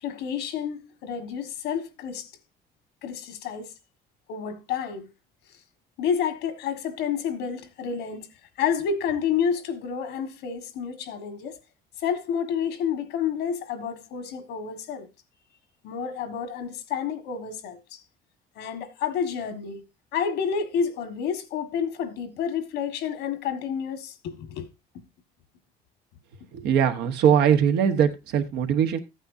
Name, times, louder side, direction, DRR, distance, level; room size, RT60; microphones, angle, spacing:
voice 1, 0.0-2.3 3.0-3.7 4.3-5.1 6.0-8.3 8.6-11.6 12.0-15.1 15.8-18.0 18.5-19.8 20.1-24.7, left 7 dB, 85° left, 1.5 m, -29 dB
voice 2, 26.5-29.0, right 8 dB, 80° right, 1.2 m, -21 dB
14.5 x 9.0 x 2.6 m
cardioid pair, 110°, 17 cm